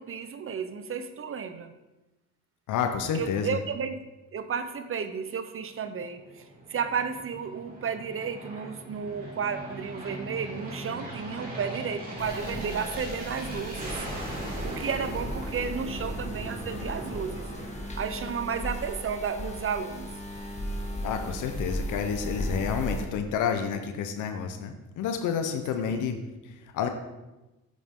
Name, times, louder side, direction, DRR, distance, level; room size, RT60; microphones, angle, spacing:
voice 1, 0.0-1.7 3.1-4.0 4.3-14.0 14.6-17.5 18.0-20.1 25.8-26.0, right 6 dB, 45° right, 10 dB, 0.8 m, -33 dB
voice 2, 2.7-3.6 21.0-26.9, left 7 dB, 85° left, 6 dB, 0.9 m, -30 dB
Aircraft, 6.0-18.7, right 1 dB, 30° right, 3.5 m, -39 dB
sound 1, 12.2-23.0, equal, 25° left, 2.0 m, -36 dB
9.3 x 8.5 x 3.8 m, 1.0 s
cardioid pair, 90°, 30 cm